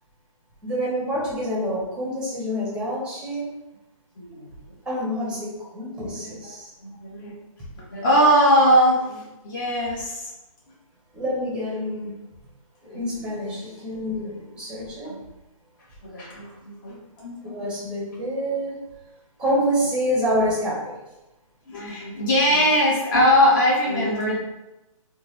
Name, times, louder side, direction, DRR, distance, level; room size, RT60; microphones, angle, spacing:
voice 1, 0.6-3.5 4.8-6.7 11.1-12.1 12.8-15.1 17.4-18.8 19.4-21.0, equal, 5° right, -5 dB, 0.9 m, -27 dB
voice 2, 4.2-4.5 5.3-5.4 6.2-6.5 6.8-7.3 7.8-10.3 12.9-13.0 15.0-15.2 16.0-17.6 21.7-24.4, equal, 35° left, -5 dB, 1.4 m, -21 dB
3.7 x 2.4 x 3.1 m, 0.98 s
hypercardioid pair, 150°, 18 cm